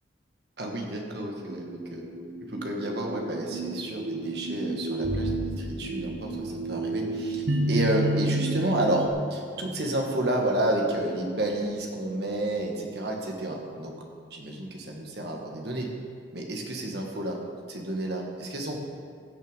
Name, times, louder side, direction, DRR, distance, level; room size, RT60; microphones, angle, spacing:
voice 1, 0.6-2.1 2.5-14.0 14.3-15.9 16.3-17.4 17.7-18.8, right 1 dB, 60° right, 1 dB, 1.7 m, -30 dB
sound 1, 1.5-9.1, right 1 dB, 85° right, 1.1 m, -31 dB
Bowed string instrument, 5.0-10.7, right 1 dB, 40° left, 2.6 m, -40 dB
15.5 x 6.7 x 5.2 m, 2.1 s
head